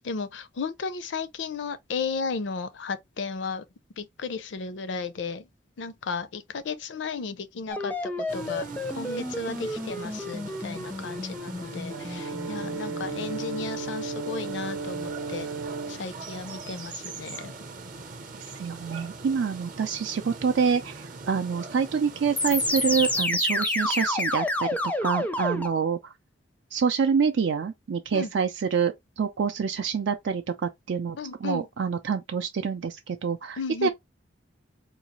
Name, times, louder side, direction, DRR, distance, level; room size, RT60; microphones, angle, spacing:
voice 1, 0.0-3.6 4.0-5.5 5.8-8.7 8.9-15.5 15.9-17.5 28.1-28.3 31.2-31.7 33.6-33.9, left 5 dB, 70° left, 0.5 m, -34 dB
sound 1, 7.7-14.1 22.4-25.7, left 1 dB, 10° left, 0.4 m, -30 dB
sound 2, 8.3-23.2, right 3 dB, 45° right, 0.7 m, -42 dB
Brass instrument, 11.9-16.1, right 4 dB, 90° right, 0.8 m, -34 dB
voice 2, 18.5-26.1 26.7-33.9, right 6 dB, 70° right, 0.4 m, -27 dB
3.9 x 2.3 x 2.8 m
head